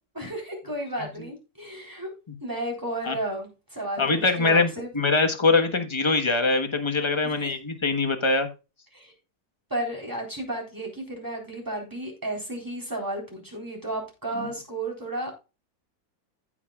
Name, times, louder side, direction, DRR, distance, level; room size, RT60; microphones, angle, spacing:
voice 1, 0.1-2.1 2.4-4.9 7.2-7.3 8.9-9.1 9.7-15.4, right 1 dB, 10° right, 0 dB, 3.9 m, -33 dB
voice 2, 4.0-8.5 14.4-14.5, left 3 dB, 20° left, 6 dB, 1.1 m, -23 dB
15.0 x 6.0 x 2.4 m, 0.29 s
omnidirectional pair, 2.0 m